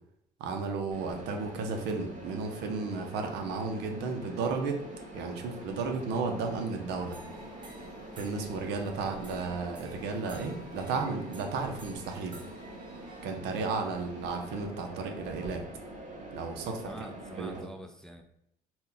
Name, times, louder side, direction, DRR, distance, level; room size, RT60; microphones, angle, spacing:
voice 1, 0.4-4.8 5.1-7.2 8.2-12.4 13.2-15.6 16.3-16.9 17.4-17.7, right 4 dB, 80° right, 4 dB, 0.7 m, -33 dB
Mechanisms, 0.9-17.6, right 1 dB, 45° right, 1.0 m, -45 dB
sound 1, 7.0-13.3, right 1 dB, 30° right, 0.9 m, -51 dB
voice 2, 16.8-18.2, right 1 dB, 5° left, 5 dB, 0.4 m, -45 dB
4.1 x 2.2 x 3.8 m, 0.76 s
cardioid pair, 110°, 17 cm